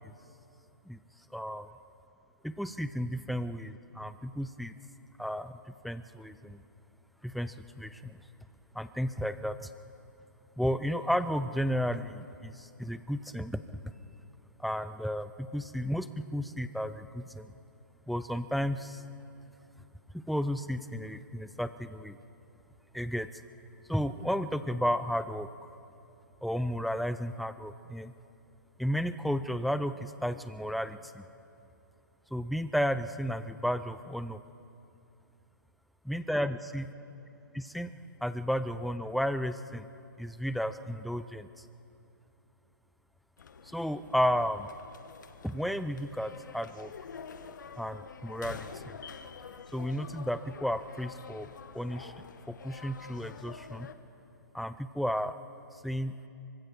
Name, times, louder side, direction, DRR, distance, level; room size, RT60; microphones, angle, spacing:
voice 1, 1.3-1.7 2.4-4.7 5.2-5.5 5.8-6.6 7.2-8.2 8.7-9.7 10.6-13.6 14.6-17.5 18.1-19.0 20.1-22.2 22.9-23.3 23.9-25.7 26.4-28.1 28.8-31.2 32.3-34.4 36.0-36.9 37.5-37.9 38.2-39.8 40.2-41.5 43.7-44.7 45.4-46.9 47.8-49.0 49.7-51.5 51.7-52.1 52.5-53.9 54.5-55.3 55.8-56.1, equal, ahead, 12 dB, 0.5 m, -33 dB
sound 1, 43.4-53.9, left 6 dB, 65° left, 1.3 m, -47 dB
25.0 x 24.0 x 4.6 m, 2.7 s
hypercardioid pair, 135°, 11 cm